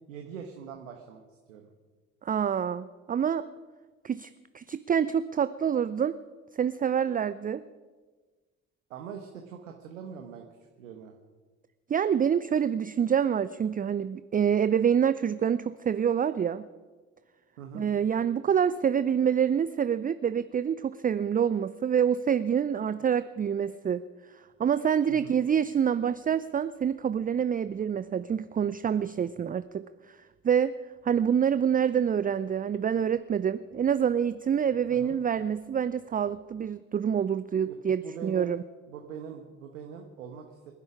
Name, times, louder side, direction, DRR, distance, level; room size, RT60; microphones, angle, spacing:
voice 1, 0.1-1.7 8.9-11.2 17.6-17.9 25.1-25.4 34.9-35.2 37.6-38.5 38.9-40.7, right 7 dB, 80° right, 4 dB, 1.3 m, -43 dB
voice 2, 2.2-3.5 4.0-4.3 4.5-6.2 6.6-7.6 11.9-16.7 17.7-24.0 24.6-29.8 30.4-30.7 31.0-38.6, right 8 dB, 20° right, 14 dB, 0.5 m, -26 dB
26.5 x 11.0 x 5.0 m, 1.4 s
figure-of-eight pair, 50°, 39 cm